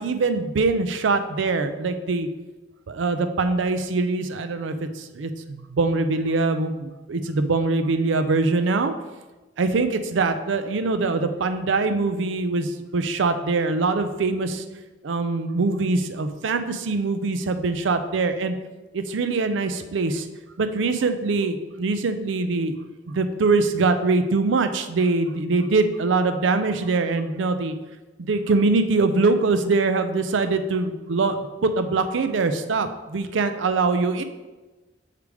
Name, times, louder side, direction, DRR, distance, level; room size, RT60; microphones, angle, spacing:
voice 1, 0.0-2.3 2.9-8.9 9.6-14.6 15.0-18.6 18.9-20.3 20.6-22.7 23.1-27.7 28.2-34.2, right 3 dB, 90° right, 9 dB, 0.5 m, -23 dB
6.6 x 4.8 x 3.3 m, 1.2 s
head